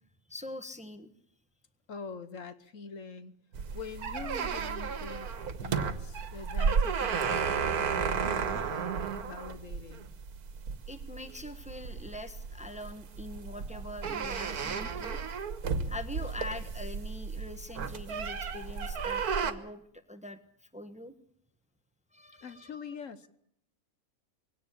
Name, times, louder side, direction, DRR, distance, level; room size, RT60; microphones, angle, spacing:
voice 1, 0.3-1.1 10.9-15.2 15.9-20.4 20.7-21.1 22.1-23.0, left 1 dB, 5° right, 10 dB, 1.2 m, -43 dB
voice 2, 1.9-3.3 3.7-10.1 22.4-23.3, left 5 dB, 60° left, 12 dB, 1.4 m, -44 dB
sound 1, 3.5-19.5, right 6 dB, 90° right, 1.8 m, -33 dB
21.5 x 17.0 x 8.4 m, 0.69 s
omnidirectional pair, 1.6 m